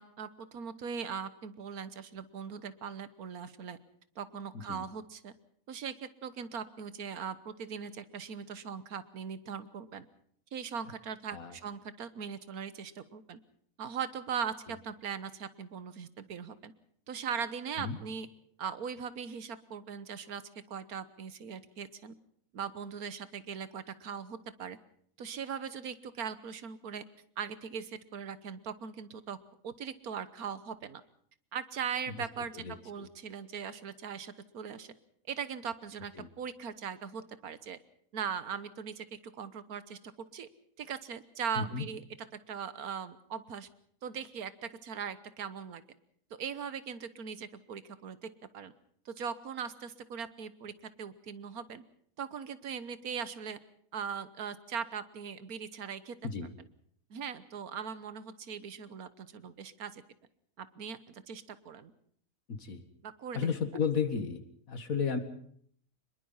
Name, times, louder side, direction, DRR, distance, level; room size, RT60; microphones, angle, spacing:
voice 1, 0.0-3.8 4.2-5.3 5.7-10.1 10.5-13.4 13.8-16.7 17.1-18.3 18.6-20.4 20.7-22.2 22.5-24.8 25.2-27.0 27.4-29.4 29.6-31.0 31.5-34.9 35.3-37.8 38.1-40.5 40.8-42.0 42.5-43.7 44.0-45.8 46.4-48.7 49.1-50.7 51.0-51.8 52.2-53.6 53.9-56.2 57.1-60.0 60.6-61.9 63.0-63.5, right 7 dB, 85° right, 14 dB, 1.6 m, -40 dB
voice 2, 32.5-33.1 36.2-36.3 41.6-41.9 56.2-56.5 62.5-62.8 63.3-64.4 64.7-65.2, left 6 dB, 70° left, 9 dB, 2.1 m, -33 dB
25.0 x 21.5 x 5.7 m, 0.62 s
omnidirectional pair, 1.5 m